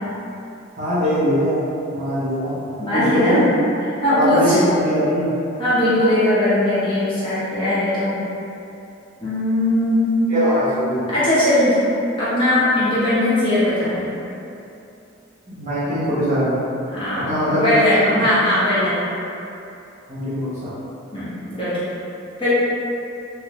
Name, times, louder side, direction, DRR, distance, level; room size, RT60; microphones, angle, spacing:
voice 1, 0.8-1.6 1.9-2.6 2.9-3.5 4.1-5.4 10.3-11.1 15.5-16.6 17.1-17.7 18.0-18.2 20.1-20.7, equal, 35° right, -11 dB, 0.9 m, -21 dB
voice 2, 2.8-3.5 4.0-4.6 5.6-8.2 9.2-10.1 11.1-11.8 12.2-14.1 16.9-19.0 21.1-21.8 22.4-22.5, left 1 dB, 25° left, -12 dB, 0.8 m, -19 dB
3.6 x 2.0 x 2.9 m, 2.7 s
head